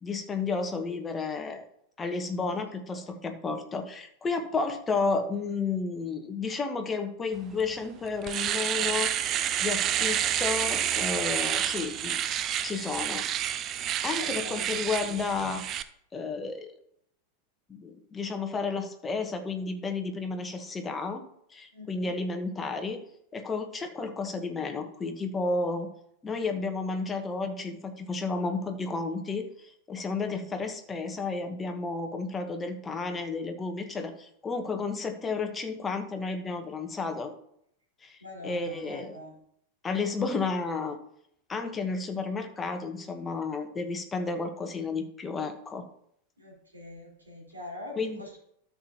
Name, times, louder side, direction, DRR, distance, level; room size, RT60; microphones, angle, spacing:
voice 1, 0.0-1.6 2.0-9.1 9.6-12.2 12.6-13.3 14.0-15.6 16.1-16.7 17.7-21.2 21.5-23.0 23.3-25.9 26.2-37.3 38.0-38.2 38.4-39.2 39.8-41.0 41.5-45.8 48.0-48.2, left 4 dB, 15° left, 5 dB, 1.3 m, -32 dB
Domestic sounds home sounds, 7.6-7.7 8.1-15.8, right 10 dB, 30° right, 0.5 m, -29 dB
voice 2, 10.0-10.3 14.1-15.2 21.7-22.2 30.4-30.5 38.2-39.3 46.4-48.4, left 2 dB, 80° right, -3 dB, 4.3 m, -44 dB
13.0 x 7.2 x 3.0 m, 0.69 s
figure-of-eight pair, 90°, 0 cm